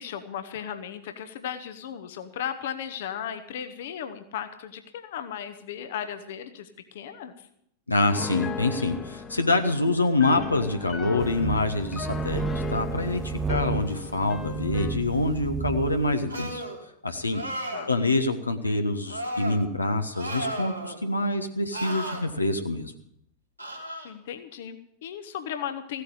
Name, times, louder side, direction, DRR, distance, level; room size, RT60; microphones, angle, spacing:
voice 1, 0.0-7.5 17.3-17.5 17.7-17.9 24.0-26.0, left 9 dB, 55° left, 9 dB, 1.1 m, -36 dB
voice 2, 7.9-16.6 17.0-17.4 17.9-22.9, left 2 dB, 80° left, 6 dB, 1.2 m, -26 dB
Piano, 8.1-15.0, left 5 dB, 20° left, 1.3 m, -37 dB
sound 1, 11.2-16.1, right 6 dB, 20° right, 0.6 m, -32 dB
sound 2, 16.3-16.8 17.3-17.9 19.1-19.6 20.1-21.0 21.7-22.2 23.6-24.1, right 1 dB, 90° right, 3.1 m, -34 dB
15.5 x 8.3 x 8.5 m, 0.72 s
figure-of-eight pair, 90°, 0 cm